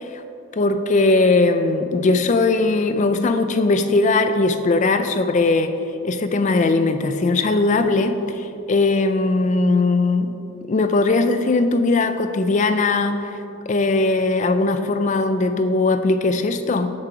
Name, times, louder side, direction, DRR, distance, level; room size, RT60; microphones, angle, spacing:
voice 1, 0.5-5.7 6.0-10.3 10.6-13.2 13.7-16.9, left 3 dB, 30° left, 8 dB, 0.3 m, -19 dB
6.9 x 6.7 x 4.8 m, 2.8 s
head